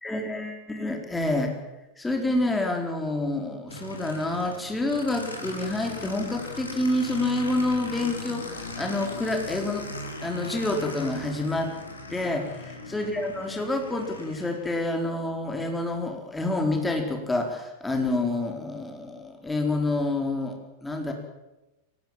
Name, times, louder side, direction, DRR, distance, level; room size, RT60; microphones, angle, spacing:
voice 1, 0.0-1.5 2.0-9.9 10.2-11.7 12.1-12.5 12.9-21.1, left 2 dB, 10° left, 3 dB, 4.1 m, -28 dB
Aircraft, 3.7-14.8, left 2 dB, 75° left, 4.2 m, -39 dB
24.0 x 19.5 x 7.4 m, 1.0 s
figure-of-eight pair, 90°, 0 cm